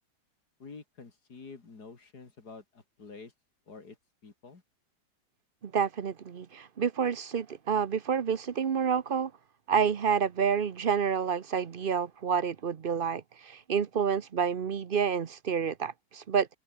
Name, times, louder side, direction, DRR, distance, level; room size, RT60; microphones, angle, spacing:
voice 1, 0.6-3.3 3.7-4.0 4.2-4.6, left 4 dB, 60° left, 3.4 m, -48 dB
voice 2, 5.6-9.3 9.7-16.6, right 7 dB, 50° right, 0.6 m, -29 dB
omnidirectional pair, 2.0 m